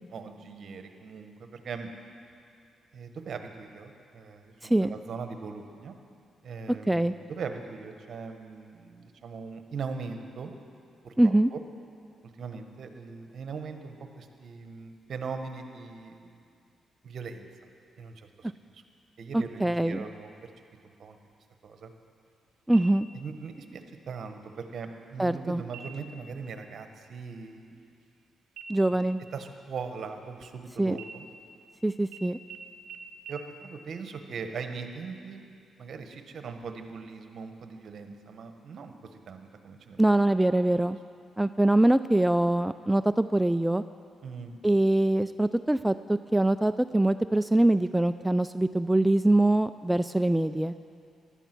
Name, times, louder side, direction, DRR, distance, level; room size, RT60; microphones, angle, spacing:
voice 1, 0.1-1.9 2.9-6.0 6.4-10.6 11.0-11.6 12.2-16.4 17.0-17.5 18.0-18.8 19.2-20.3 21.0-21.2 21.6-21.9 23.1-27.7 29.3-31.2 33.3-35.4 35.8-40.0 44.2-44.6, right 5 dB, 60° right, 6 dB, 1.3 m, -40 dB
voice 2, 4.6-4.9 6.9-7.1 11.2-11.5 19.3-20.0 22.7-23.1 25.2-25.6 28.7-29.2 30.8-31.0 31.8-32.4 40.0-41.0 41.4-43.8 44.6-50.7, right 1 dB, 5° right, 11 dB, 0.3 m, -23 dB
sound 1, 22.7-23.4 23.8-23.9 24.4-25.0 25.6-26.2 26.6-26.8 27.1-28.2 28.6-30.6 30.9-31.7 32.1-32.2 32.5-32.6 32.9-33.0 33.3-33.4, right 6 dB, 85° right, 0.7 m, -48 dB
16.0 x 11.5 x 6.1 m, 2.5 s
cardioid pair, 80°, 0 cm